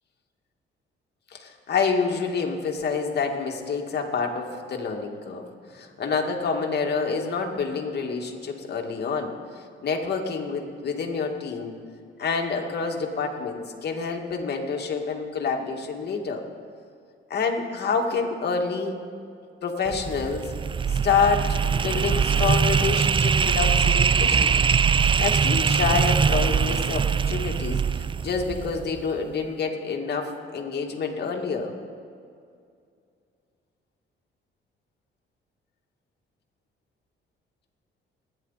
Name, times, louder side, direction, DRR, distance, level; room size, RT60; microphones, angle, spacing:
voice 1, 1.3-9.3 9.8-11.7 12.2-16.4 17.3-19.0 19.6-20.5 20.9-24.6 25.2-31.7, left 5 dB, 55° left, 2 dB, 2.3 m, -27 dB
sound 1, 19.9-29.0, right 6 dB, 25° right, 0.4 m, -22 dB
29.0 x 10.5 x 4.2 m, 2.3 s
cardioid pair, 90°, 20 cm